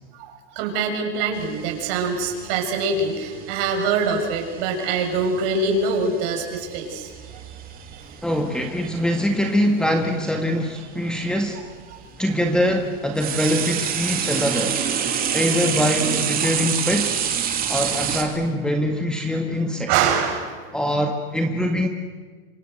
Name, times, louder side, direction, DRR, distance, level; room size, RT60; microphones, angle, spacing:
voice 1, 0.1-8.0 19.9-20.6, right 4 dB, 55° right, 2 dB, 7.2 m, -24 dB
sound 1, 1.3-9.5 10.6-10.7 11.5-18.2, right 8 dB, 30° right, 3.5 m, -28 dB
voice 2, 8.2-11.6 12.2-14.8 15.3-17.3 17.7-20.1 20.7-21.9, equal, 5° left, 4 dB, 1.9 m, -23 dB
27.0 x 26.0 x 8.1 m, 1.5 s
supercardioid pair, 140°, 30 cm